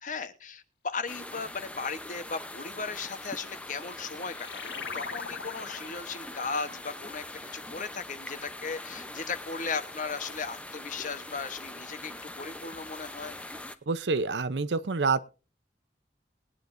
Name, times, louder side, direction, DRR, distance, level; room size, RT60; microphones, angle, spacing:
voice 1, 0.0-7.2 7.5-13.4, left 4 dB, 45° left, 1.1 m, -37 dB
sound 1, 1.1-13.8, left 1 dB, 5° left, 0.7 m, -42 dB
sound 2, 3.8-8.5, left 5 dB, 75° left, 1.0 m, -43 dB
voice 2, 13.9-15.3, right 4 dB, 80° right, 0.7 m, -27 dB
21.0 x 9.8 x 2.6 m
head